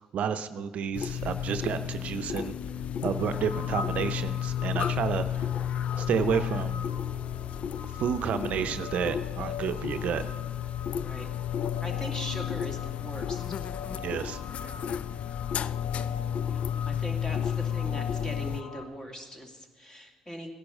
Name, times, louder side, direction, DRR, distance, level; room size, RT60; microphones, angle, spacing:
voice 1, 0.1-2.5 3.0-5.5 6.0-6.9 8.0-10.2 13.9-14.4, right 7 dB, 60° right, 10 dB, 0.6 m, -30 dB
sound 1, 0.9-18.6, left 9 dB, 50° left, 0.3 m, -32 dB
sound 2, 3.1-18.8, left 7 dB, 75° left, 1.1 m, -42 dB
voice 2, 10.9-11.3 11.8-13.4 16.5-20.5, equal, 25° left, 3 dB, 2.5 m, -40 dB
17.0 x 10.5 x 5.2 m, 1.4 s
hypercardioid pair, 55°, 3 cm